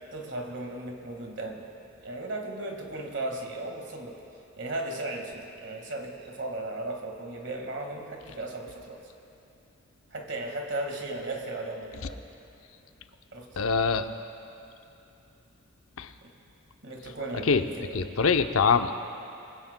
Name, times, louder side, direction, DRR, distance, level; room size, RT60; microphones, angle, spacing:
voice 1, 0.1-1.7 2.0-4.2 4.6-9.0 10.1-12.2 13.3-13.6 16.2-16.3 16.8-18.2, right 2 dB, 55° right, 2 dB, 1.7 m, -36 dB
voice 2, 13.6-14.1 16.0-16.1 17.5-17.6 17.9-19.0, left 5 dB, 85° left, 8 dB, 0.6 m, -23 dB
23.5 x 16.5 x 2.2 m, 2.8 s
head